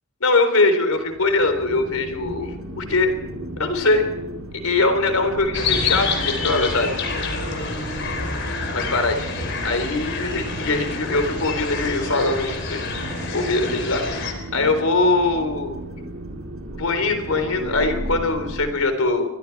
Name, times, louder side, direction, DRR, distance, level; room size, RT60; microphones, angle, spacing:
voice 1, 0.2-3.1 3.6-4.1 4.6-7.0 8.7-9.2 9.6-14.0 14.5-15.8 16.7-19.3, left 3 dB, 85° left, 8 dB, 3.7 m, -22 dB
sound 1, 0.9-18.6, right 1 dB, 70° right, 3.7 m, -35 dB
sound 2, 5.5-14.3, left 4 dB, 55° left, 4.2 m, -27 dB
28.5 x 23.5 x 4.7 m, 1.0 s
head